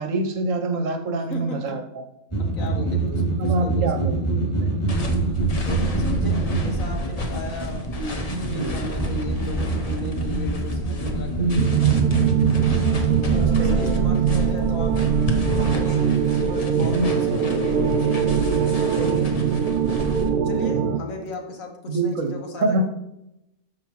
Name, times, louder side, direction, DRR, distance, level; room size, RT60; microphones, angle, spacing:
voice 1, 0.0-1.8 3.4-4.7 8.3-8.8 11.3-12.0 13.6-13.9 16.8-17.3 18.9-19.4 21.9-22.3 22.6-22.8, right 2 dB, 65° right, 6 dB, 1.1 m, -26 dB
voice 2, 1.3-1.8 2.4-4.2 5.2-12.0 12.8-15.0 15.6-19.4 20.1-22.8, left 3 dB, 65° left, 3 dB, 1.5 m, -36 dB
sound 1, 2.3-13.5, right 3 dB, 10° left, 2.5 m, -25 dB
sound 2, 4.9-20.3, left 1 dB, 35° left, 0.7 m, -30 dB
sound 3, 11.6-21.0, right 8 dB, 85° right, 1.1 m, -22 dB
13.0 x 4.9 x 3.0 m, 0.88 s
omnidirectional pair, 1.6 m